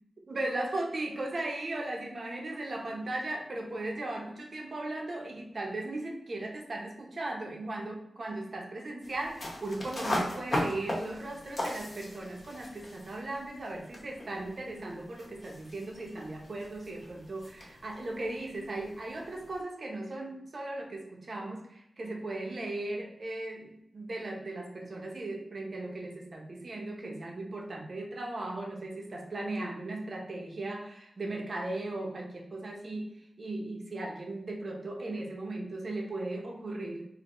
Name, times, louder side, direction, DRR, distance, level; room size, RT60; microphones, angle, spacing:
voice 1, 0.3-37.1, right 2 dB, 45° right, 0 dB, 0.7 m, -37 dB
sound 1, 9.0-19.6, left 1 dB, 40° left, 0.9 m, -39 dB
4.3 x 2.6 x 3.0 m, 0.79 s
wide cardioid pair, 125°, 0 cm